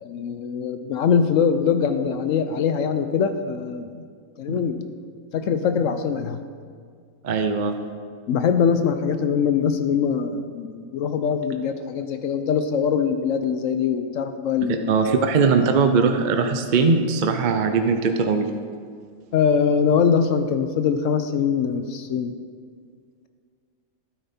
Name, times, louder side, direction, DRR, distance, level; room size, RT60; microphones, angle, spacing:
voice 1, 0.0-4.0 4.4-4.9 5.3-6.4 8.3-14.9 19.3-22.3, left 6 dB, 70° left, 9 dB, 0.9 m, -22 dB
voice 2, 7.2-7.8 14.9-18.5, right 4 dB, 55° right, 6 dB, 0.5 m, -20 dB
12.5 x 9.1 x 4.2 m, 2.1 s
omnidirectional pair, 1.5 m